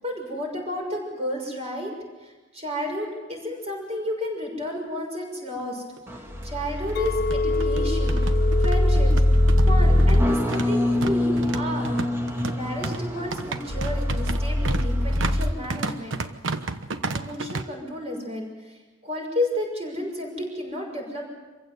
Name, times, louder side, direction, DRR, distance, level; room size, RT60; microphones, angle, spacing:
voice 1, 0.0-1.9 2.2-5.8 6.4-8.2 8.6-9.1 9.7-11.9 12.5-16.2 17.1-18.7 19.0-21.3, left 1 dB, 35° right, 1 dB, 6.5 m, -31 dB
sound 1, 5.6-5.7 6.0-6.1 6.9-17.6, right 3 dB, 90° right, 1.1 m, -32 dB
sound 2, 6.1-15.5, left 1 dB, 15° right, 2.0 m, -22 dB
Chink clink, 7.0-11.3 11.6-12.1, left 3 dB, 55° left, 0.8 m, -31 dB
25.5 x 15.5 x 7.9 m, 1.2 s
head